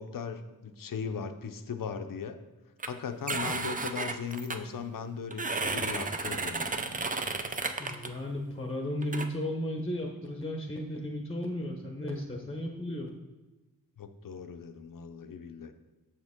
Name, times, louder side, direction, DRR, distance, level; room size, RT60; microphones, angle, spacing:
voice 1, 0.0-2.4 2.8-6.9 14.0-15.7, left 6 dB, 60° left, 9 dB, 0.6 m, -38 dB
sound 1, 2.8-2.9 3.3-4.6 5.3-8.1 9.0-9.3, right 3 dB, 25° right, 0.5 m, -33 dB
voice 2, 7.8-13.1, left 1 dB, 15° left, 2 dB, 0.8 m, -34 dB
7.1 x 6.4 x 3.6 m, 1.1 s
wide cardioid pair, 85°, 37 cm